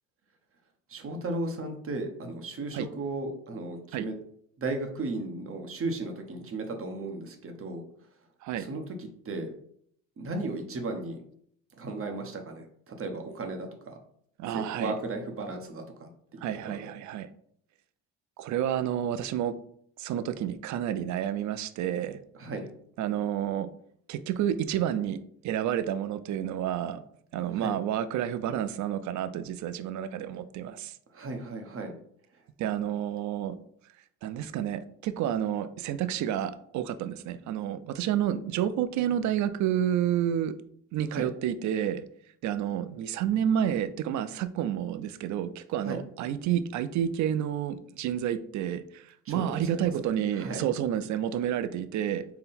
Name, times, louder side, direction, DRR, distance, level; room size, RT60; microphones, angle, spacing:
voice 1, 0.9-4.1 4.6-7.8 8.6-9.5 10.2-11.2 11.7-14.0 14.5-16.5 16.8-16.9 22.3-22.7 27.6-27.7 31.1-31.9 41.1-41.3 45.8-46.0 49.3-50.1 50.3-50.7, right 2 dB, 40° right, 5 dB, 0.8 m, -35 dB
voice 2, 14.4-15.0 16.4-17.3 18.4-19.5 20.0-22.2 23.0-23.7 24.1-25.2 25.4-27.0 27.3-31.0 32.6-33.6 34.2-40.6 40.9-42.0 42.4-52.3, right 10 dB, 55° right, 12 dB, 0.5 m, -30 dB
3.7 x 2.2 x 4.2 m, 0.66 s
supercardioid pair, 75°, 36 cm